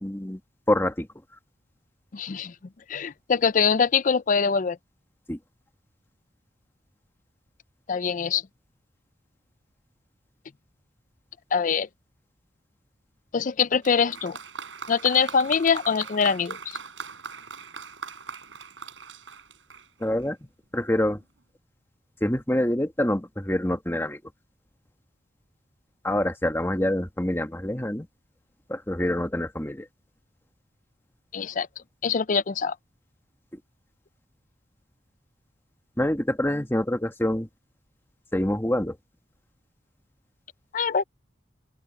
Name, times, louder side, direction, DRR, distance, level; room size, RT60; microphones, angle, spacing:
voice 1, 0.0-0.4 0.7-1.1 5.3-5.4 20.0-20.4 20.7-21.2 22.2-24.2 26.0-28.1 28.7-29.9 36.0-37.5 38.3-39.0, left 1 dB, 15° left, 1.5 m, -26 dB
voice 2, 2.1-2.5 2.9-4.8 7.9-8.4 11.5-11.9 13.3-14.4 14.9-16.6 31.3-31.7 32.0-32.7 40.7-41.0, left 6 dB, 45° left, 0.5 m, -23 dB
Applause, 13.8-20.3 21.2-21.3, right 5 dB, 90° right, 6.2 m, -40 dB
open air
head